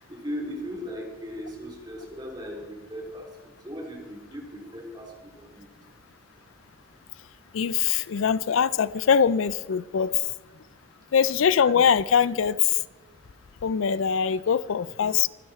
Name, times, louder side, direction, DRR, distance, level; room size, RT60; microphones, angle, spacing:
voice 1, 0.0-5.7, equal, 20° right, 3.7 m, -38 dB
voice 2, 7.5-10.2 11.1-12.8 13.6-15.3, left 7 dB, 85° left, 0.4 m, -22 dB
25.5 x 10.5 x 4.4 m
head